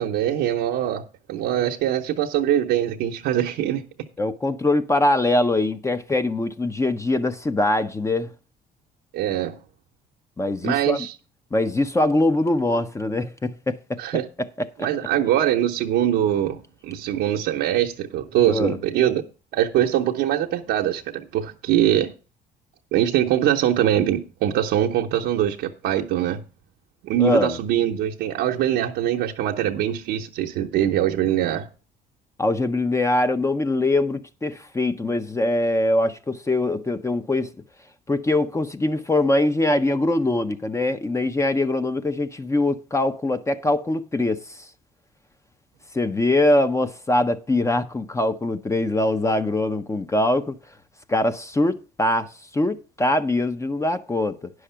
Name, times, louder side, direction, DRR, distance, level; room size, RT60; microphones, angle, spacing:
voice 1, 0.0-3.8 9.1-9.6 10.6-11.1 14.0-14.2 14.8-16.6 16.8-19.2 19.5-22.1 22.9-26.4 27.0-31.7, right 11 dB, 85° right, 0.8 m, -22 dB
voice 2, 4.2-8.3 10.4-11.0 11.5-14.9 18.5-18.8 27.2-27.6 32.4-37.5 38.1-44.7 45.9-50.5 51.1-54.5, left 2 dB, 15° left, 0.6 m, -23 dB
10.0 x 6.4 x 5.6 m
cardioid pair, 110°, 17 cm